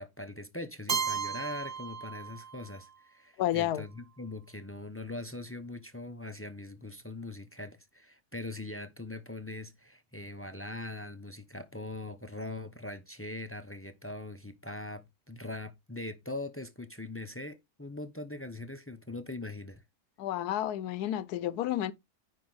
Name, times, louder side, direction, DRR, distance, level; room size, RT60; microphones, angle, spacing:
voice 1, 0.0-19.8, left 2 dB, 20° left, 0.3 m, -41 dB
Keyboard (musical), 0.9-2.8, right 6 dB, 50° right, 0.4 m, -34 dB
voice 2, 3.4-3.8 20.2-21.9, left 12 dB, 85° left, 1.2 m, -31 dB
9.8 x 4.5 x 4.0 m
omnidirectional pair, 1.6 m